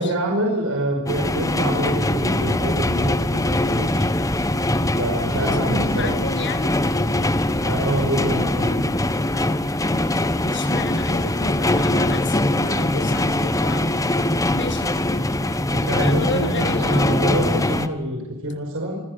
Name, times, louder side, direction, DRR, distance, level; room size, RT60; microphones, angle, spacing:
voice 1, 0.0-4.1 5.0-6.2 7.6-8.9 15.7-19.0, right 1 dB, 70° right, 0 dB, 5.4 m, -26 dB
sound 1, 1.1-17.9, left 1 dB, 15° left, 1.2 m, -22 dB
voice 2, 5.3-6.7 10.3-13.9 14.5-15.0 16.0-17.2, left 3 dB, 55° left, 9 dB, 1.5 m, -31 dB
26.0 x 16.0 x 8.2 m, 1.1 s
head